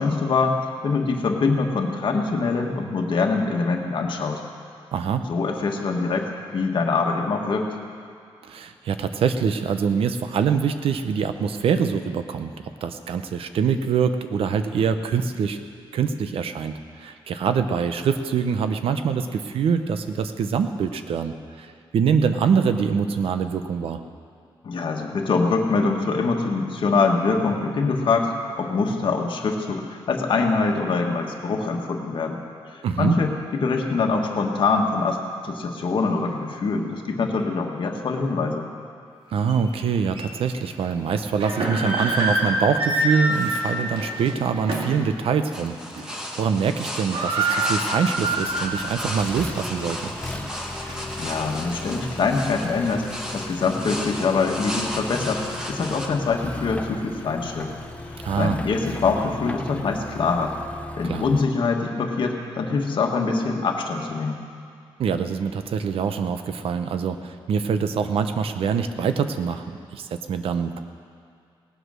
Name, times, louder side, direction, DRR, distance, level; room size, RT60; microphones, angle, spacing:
voice 1, 0.0-4.4 5.3-7.8 24.6-32.4 32.7-35.2 35.4-38.7 51.2-53.1 53.3-57.7 58.4-60.5 61.0-64.4, left 4 dB, 60° left, 1 dB, 1.5 m, -24 dB
voice 2, 4.9-5.3 8.4-12.5 12.8-15.6 15.9-24.0 32.8-33.2 39.3-50.1 58.2-58.6 61.0-61.2 65.0-69.6 69.9-70.8, right 6 dB, 85° right, 9 dB, 0.8 m, -24 dB
sound 1, 39.5-39.6 40.1-40.3 41.2-45.0 45.4-45.6 46.0-46.4 46.6-46.7 46.9-48.9 49.3-49.4 50.0-51.3, right 2 dB, 65° right, 2.2 m, -26 dB
sound 2, 45.5-56.1, equal, 5° right, 1.2 m, -34 dB
Accelerating revving vroom, 48.2-61.4, left 2 dB, 15° left, 0.6 m, -37 dB
18.5 x 8.1 x 6.3 m, 2.4 s
wide cardioid pair, 135°, 9 cm